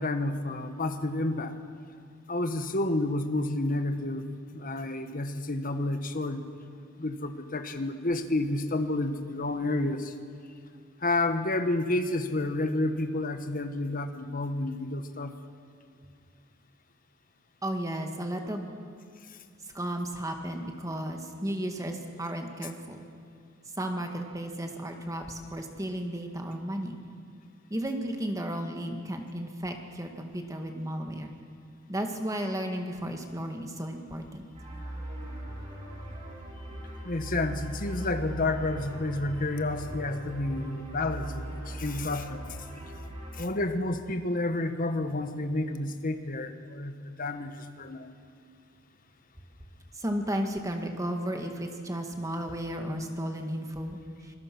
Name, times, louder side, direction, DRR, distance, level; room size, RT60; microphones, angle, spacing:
voice 1, 0.0-1.5 2.3-6.4 7.0-10.1 11.0-15.4 19.3-19.4 37.0-42.6 43.3-48.1, left 2 dB, 45° left, 8 dB, 1.3 m, -30 dB
voice 2, 17.6-18.7 19.7-23.0 23.8-27.0 27.7-31.3 31.9-34.5 49.9-54.0, right 1 dB, 15° right, 4 dB, 1.8 m, -34 dB
sound 1, 34.5-43.4, right 1 dB, 35° right, 5.4 m, -39 dB
25.5 x 20.5 x 6.1 m, 2.3 s
head